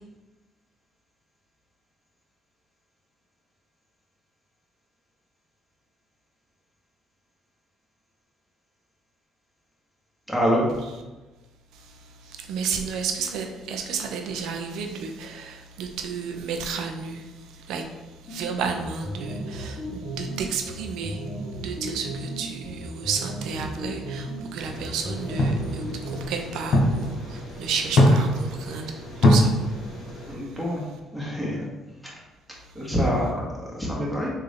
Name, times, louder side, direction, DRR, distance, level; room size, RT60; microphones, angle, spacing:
voice 1, 10.3-10.7 30.3-30.8 31.1-31.7 32.7-34.3, equal, 5° left, -5 dB, 1.4 m, -26 dB
voice 2, 12.2-17.9 18.3-21.2 21.6-29.6, right 6 dB, 75° right, 4 dB, 0.5 m, -32 dB
sound 1, 18.3-26.3, right 1 dB, 25° left, 1.4 m, -35 dB
sound 2, 24.6-30.4, left 1 dB, 65° left, 0.9 m, -23 dB
3.8 x 2.6 x 3.4 m, 1.1 s
supercardioid pair, 70°, 0 cm